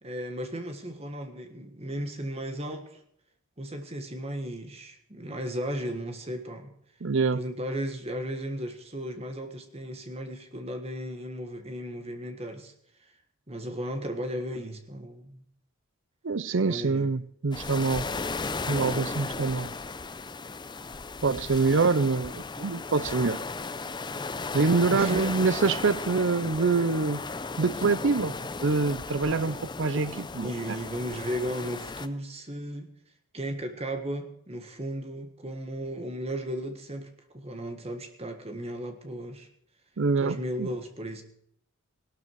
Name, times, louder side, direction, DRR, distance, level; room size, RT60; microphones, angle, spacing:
voice 1, 0.0-3.0 3.6-6.7 7.3-12.7 13.5-15.4 16.6-17.1 21.7-21.8 24.9-25.3 26.5-26.9 29.4-29.6 30.4-32.9 33.3-39.5 40.2-41.2, equal, 30° right, 1.7 m, -35 dB
voice 2, 7.0-7.4 16.2-18.1 18.7-19.7 21.2-23.4 24.5-27.2 27.6-30.8 40.0-40.7, right 4 dB, 60° right, 0.6 m, -25 dB
sound 1, 17.5-32.1, left 3 dB, 20° left, 0.5 m, -35 dB
17.5 x 12.5 x 4.8 m
head